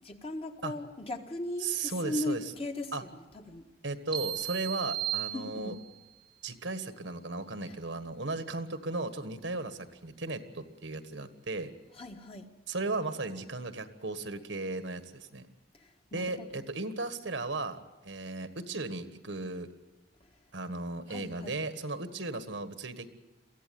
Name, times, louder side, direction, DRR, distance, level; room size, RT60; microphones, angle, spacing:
voice 1, 0.0-3.7 5.3-5.8 7.6-7.7 11.9-12.5 15.7-16.6 21.1-21.6, left 2 dB, 30° left, 4 dB, 1.6 m, -38 dB
voice 2, 1.6-2.4 2.9-3.0 3.8-5.7 6.4-11.7 12.7-15.5 16.1-19.7 20.5-23.1, right 3 dB, 75° right, 10 dB, 1.5 m, -36 dB
sound 1, 4.1-6.1, right 12 dB, 25° right, 0.9 m, -35 dB
23.5 x 15.5 x 9.3 m, 1.1 s
head